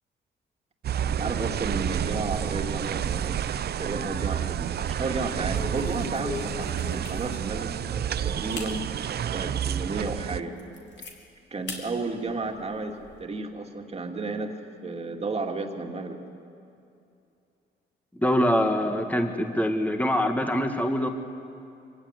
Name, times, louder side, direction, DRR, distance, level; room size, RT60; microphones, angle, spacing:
sound 1, 0.8-10.4, right 9 dB, 55° right, 0.7 m, -30 dB
voice 1, 1.1-3.4 3.8-8.8 9.3-10.5 11.5-14.5 14.8-16.2, right 3 dB, 30° right, 3 dB, 2.6 m, -33 dB
sound 2, 3.7-4.4 4.7-5.0 5.5-7.6 8.1-8.2 8.5-8.8 9.3-9.4 9.9-10.0 10.3-11.1 11.7-11.8 12.2-13.2, left 4 dB, 60° left, 3.7 m, -39 dB
voice 2, 18.2-21.1, equal, 5° left, 5 dB, 1.9 m, -24 dB
24.5 x 16.0 x 9.7 m, 2.6 s
cardioid pair, 90°, 20 cm